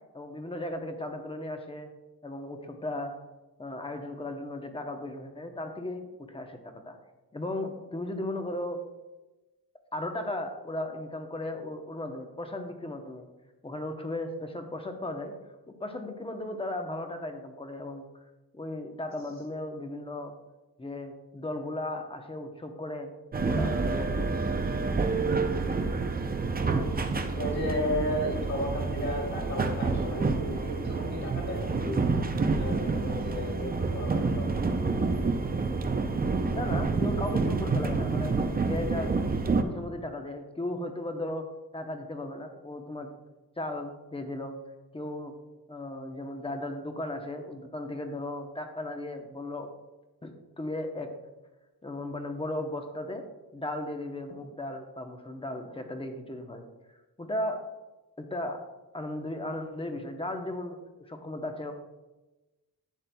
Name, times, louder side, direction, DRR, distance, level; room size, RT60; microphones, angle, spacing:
voice 1, 0.1-1.9 2.2-3.1 3.6-7.0 7.3-8.8 9.9-13.3 13.6-15.3 15.8-18.1 18.5-20.3 20.8-23.1 23.4-24.1 36.5-39.1 39.6-41.5 41.7-43.1 43.6-44.6 44.9-45.3 45.7-49.7 50.2-51.1 51.8-53.2 53.5-56.6 57.2-57.6 58.2-58.6 58.9-60.8 61.1-61.7, left 1 dB, 15° left, 5 dB, 0.8 m, -36 dB
sound 1, 23.3-39.6, right 4 dB, 25° right, 0.5 m, -28 dB
voice 2, 25.8-26.7 27.4-32.1 32.6-34.6, left 1 dB, 45° left, -2 dB, 2.9 m, -34 dB
12.0 x 8.6 x 2.3 m, 1.1 s
wide cardioid pair, 160°, 38 cm